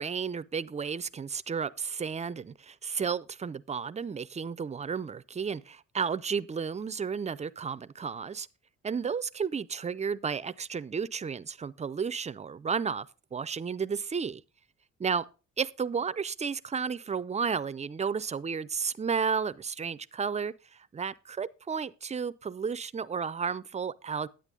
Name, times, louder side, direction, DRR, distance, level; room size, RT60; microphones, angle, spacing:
voice 1, 0.0-8.5 8.8-13.1 13.3-14.4 15.0-15.2 15.6-24.3, right 6 dB, 25° right, 0.4 m, -32 dB
9.8 x 8.9 x 3.7 m
cardioid pair, 90°, 30 cm